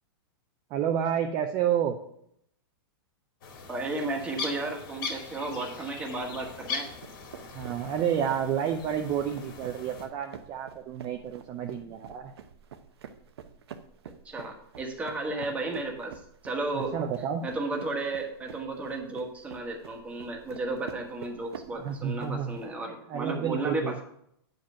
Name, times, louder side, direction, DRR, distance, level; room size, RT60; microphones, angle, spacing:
voice 1, 0.7-2.0 7.5-12.3 15.4-15.5 16.7-17.4 21.7-22.6 23.1-23.9, right 9 dB, 30° right, 4 dB, 0.6 m, -30 dB
sound 1, 3.4-10.1, left 4 dB, 55° left, 2.1 m, -40 dB
voice 2, 3.7-6.9 14.2-17.0 17.4-24.0, right 2 dB, 10° right, 1 dB, 1.4 m, -33 dB
sound 2, 7.0-22.7, right 8 dB, 80° right, 0.9 m, -48 dB
9.2 x 5.2 x 5.7 m, 0.71 s
supercardioid pair, 155°, 13 cm